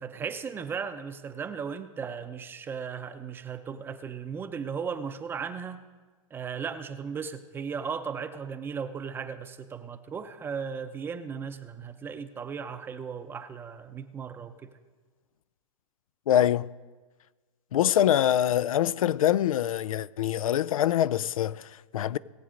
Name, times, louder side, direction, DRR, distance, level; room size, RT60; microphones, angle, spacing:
voice 1, 0.0-5.8 6.3-14.7, right 6 dB, 10° right, 0.6 m, -36 dB
voice 2, 16.3-16.7 17.7-22.2, left 11 dB, 80° left, 0.5 m, -24 dB
19.0 x 7.3 x 5.2 m
hypercardioid pair, 150°, 17 cm